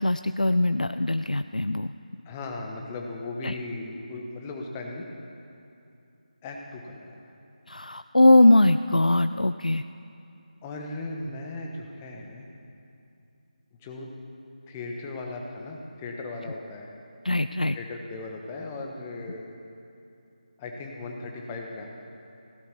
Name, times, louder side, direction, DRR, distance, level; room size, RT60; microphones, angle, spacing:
voice 1, 0.0-1.9 3.4-3.5 7.7-9.8 17.2-17.8, left 2 dB, 85° left, 11 dB, 0.4 m, -21 dB
voice 2, 2.2-5.0 6.4-7.1 10.6-12.5 13.8-14.1 14.7-16.9 17.7-19.5 20.6-21.9, left 2 dB, 15° left, 1 dB, 1.2 m, -37 dB
16.5 x 11.5 x 7.0 m, 2.7 s
figure-of-eight pair, 160°, 4 cm